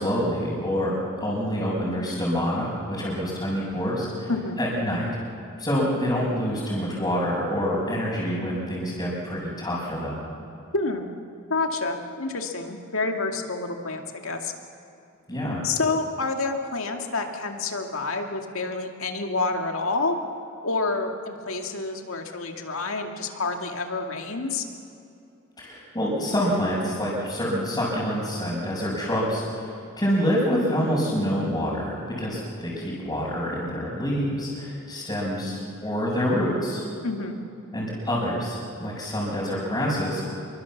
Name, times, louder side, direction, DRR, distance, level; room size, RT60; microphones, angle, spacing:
voice 1, 0.0-4.3 4.6-5.1 5.6-10.2 15.3-15.6 25.6-29.7 30.0-36.8 37.7-40.3, equal, 20° left, -9 dB, 5.9 m, -27 dB
voice 2, 10.7-11.1 11.5-14.5 15.6-20.2 20.6-24.7 37.0-37.4, left 3 dB, 75° left, 4 dB, 2.2 m, -28 dB
26.5 x 23.5 x 7.3 m, 2.7 s
head